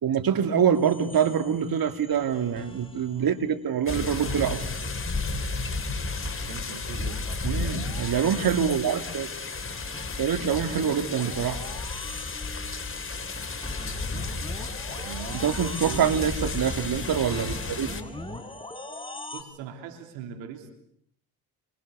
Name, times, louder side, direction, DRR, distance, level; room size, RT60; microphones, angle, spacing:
voice 1, 0.0-4.6 7.4-9.3 10.2-11.6 15.3-18.0, right 8 dB, 50° right, 2.7 m, -25 dB
sound 1, 0.7-3.5 3.8-19.4, left 1 dB, 10° left, 4.5 m, -43 dB
voice 2, 1.1-1.5 3.0-3.4 3.9-4.9 6.4-7.7 14.9-16.2 19.3-20.7, right 8 dB, 75° right, 3.2 m, -41 dB
sound 2, 3.9-18.0, left 3 dB, 25° left, 3.6 m, -33 dB
29.0 x 25.5 x 6.8 m
hypercardioid pair, 55°, 45 cm